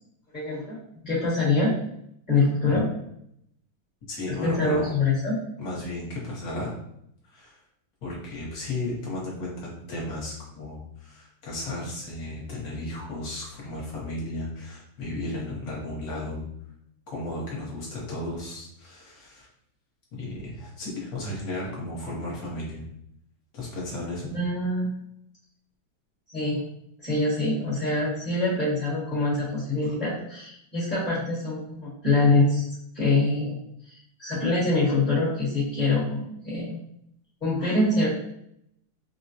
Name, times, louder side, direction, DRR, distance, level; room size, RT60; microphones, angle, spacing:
voice 1, 0.3-1.7 2.3-2.9 4.3-5.3 24.3-24.9 26.3-26.6 27.0-32.7 32.9-33.6 33.9-36.8 37.4-38.1, left 2 dB, 25° left, -10 dB, 1.1 m, -25 dB
voice 2, 4.1-4.9 5.6-6.7 7.3-7.6 8.0-16.4 17.1-19.5 20.2-22.9 23.5-24.3, left 1 dB, 55° left, -4 dB, 1.3 m, -34 dB
3.8 x 2.1 x 2.7 m, 0.74 s
omnidirectional pair, 2.2 m